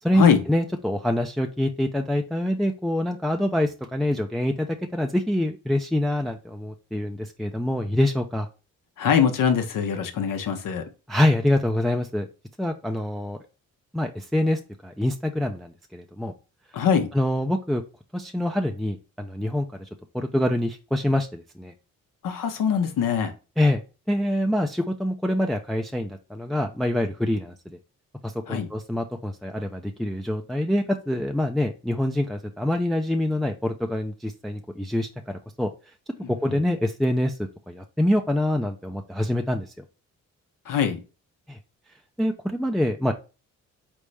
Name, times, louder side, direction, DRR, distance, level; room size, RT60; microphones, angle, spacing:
voice 1, 0.0-8.5 11.1-12.3 12.6-13.4 13.9-16.3 17.1-17.8 18.1-19.9 20.1-21.7 23.6-23.8 24.1-27.8 28.2-35.7 36.3-37.4 37.7-39.7 41.5-41.6 42.2-43.1, left 1 dB, ahead, 4 dB, 0.5 m, -25 dB
voice 2, 9.0-10.9 16.7-17.1 22.2-23.3 28.5-28.7 36.2-36.6 40.6-41.0, left 7 dB, 70° left, 6 dB, 0.9 m, -23 dB
4.0 x 3.5 x 3.2 m, 0.32 s
supercardioid pair, 55°, 34 cm